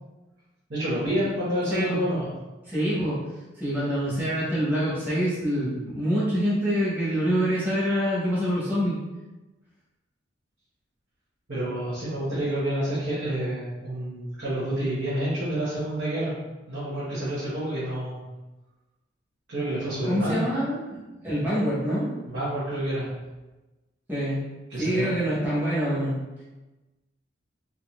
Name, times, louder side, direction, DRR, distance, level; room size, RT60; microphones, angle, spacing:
voice 1, 0.7-2.3 11.5-16.4 16.7-18.2 19.5-20.4 22.3-23.1 24.7-25.1, right 1 dB, 65° right, -12 dB, 1.2 m, -28 dB
voice 2, 1.7-2.0 2.7-3.2 3.5-9.0 20.1-22.1 24.1-24.4 24.7-26.2, equal, 10° right, -10 dB, 1.1 m, -26 dB
3.7 x 2.8 x 2.5 m, 1.1 s
head